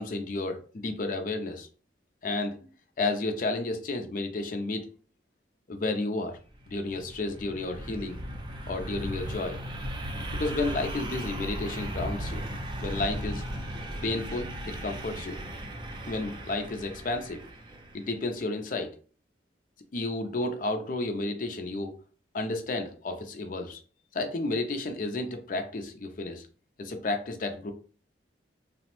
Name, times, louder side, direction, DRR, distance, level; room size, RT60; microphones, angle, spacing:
voice 1, 0.0-1.7 2.2-4.9 5.7-6.4 6.7-8.2 8.7-9.6 10.3-12.4 12.8-13.4 14.0-15.4 16.1-17.4 17.9-18.9 19.9-21.9 22.3-23.8 24.1-26.4 26.8-27.7, left 2 dB, 45° left, 7 dB, 0.4 m, -32 dB
sound 1, 6.5-18.2, equal, 25° right, 0.4 m, -37 dB
3.0 x 2.0 x 3.0 m, 0.39 s
head